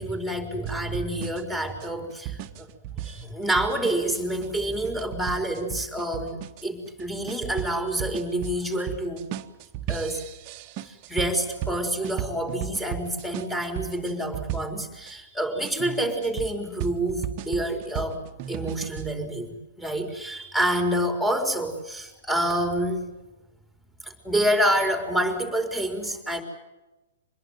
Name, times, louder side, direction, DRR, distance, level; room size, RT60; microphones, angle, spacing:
voice 1, 0.0-2.7 3.0-9.3 9.9-10.2 10.8-23.1 24.0-26.4, right 1 dB, 5° left, 5 dB, 4.4 m, -28 dB
sound 1, 0.6-15.1 15.6-19.1, right 11 dB, 35° right, 1.3 m, -36 dB
25.5 x 21.0 x 9.2 m, 1.0 s
figure-of-eight pair, 115°, 0 cm